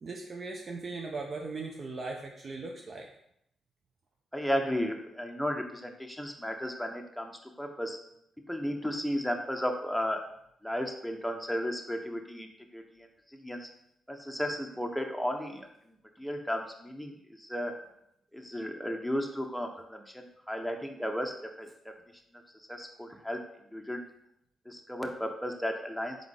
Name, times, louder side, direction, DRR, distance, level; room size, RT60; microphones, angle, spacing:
voice 1, 0.0-3.1, right 3 dB, 50° right, 1 dB, 0.5 m, -38 dB
voice 2, 4.3-7.3 7.6-8.0 8.5-10.2 10.6-13.1 13.3-13.7 14.1-15.7 16.2-17.7 18.3-21.9 22.7-23.4 23.7-24.0 24.7-26.2, equal, ahead, 3 dB, 0.6 m, -34 dB
3.8 x 3.6 x 3.3 m, 0.75 s
supercardioid pair, 50°, 0 cm